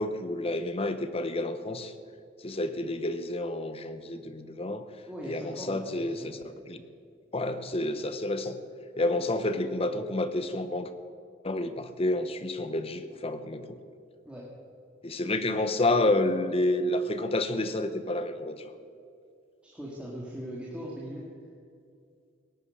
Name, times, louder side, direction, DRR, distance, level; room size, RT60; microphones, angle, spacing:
voice 1, 0.0-1.9 2.4-4.9 5.2-6.8 7.3-8.6 9.0-10.9 11.4-13.8 15.0-18.7, left 2 dB, 30° left, 10 dB, 0.9 m, -29 dB
voice 2, 5.1-6.4 14.2-14.5 19.6-21.3, equal, 5° right, -5 dB, 2.2 m, -40 dB
18.0 x 9.9 x 6.5 m, 2.3 s
head